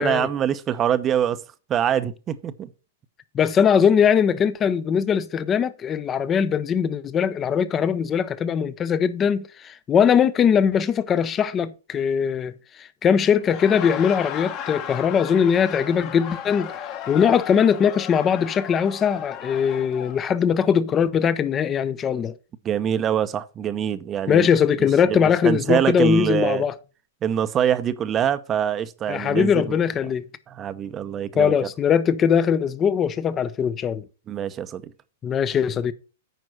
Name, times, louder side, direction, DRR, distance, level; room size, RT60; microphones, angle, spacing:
voice 1, 0.0-1.4 1.7-2.7 22.6-24.5 25.1-26.6 27.2-29.8 30.5-31.5 34.3-34.8, right 9 dB, 25° right, 0.8 m, -24 dB
voice 2, 3.3-12.5 12.8-16.7 17.1-22.3 24.3-26.7 29.1-30.3 31.4-34.0 35.2-35.9, left 7 dB, 20° left, 0.7 m, -21 dB
Laughter, 13.3-20.2, left 9 dB, 35° left, 1.3 m, -35 dB
9.2 x 5.2 x 6.2 m
hypercardioid pair, 130°, 0 cm